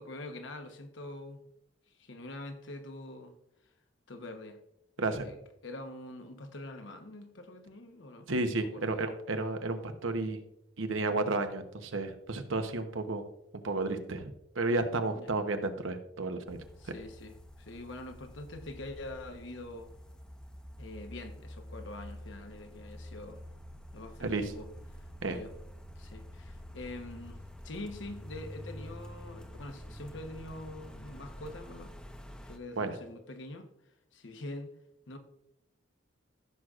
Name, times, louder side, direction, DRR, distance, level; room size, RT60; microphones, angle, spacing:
voice 1, 0.0-1.4 2.0-3.3 4.1-4.6 5.0-5.4 5.6-8.3 8.6-9.1 10.9-11.1 15.1-15.3 16.8-19.9 20.8-23.4 23.9-25.5 26.0-31.9 32.4-33.7 34.1-34.7 35.1-35.2, left 2 dB, 70° left, 1.0 m, -45 dB
voice 2, 5.0-5.3 8.3-10.4 10.8-13.3 13.6-16.6 24.2-24.5 25.2-25.4 32.8-32.9, right 2 dB, 85° right, 1.0 m, -32 dB
sound 1, 16.5-32.6, equal, 5° left, 0.6 m, -48 dB
15.0 x 6.3 x 2.5 m
head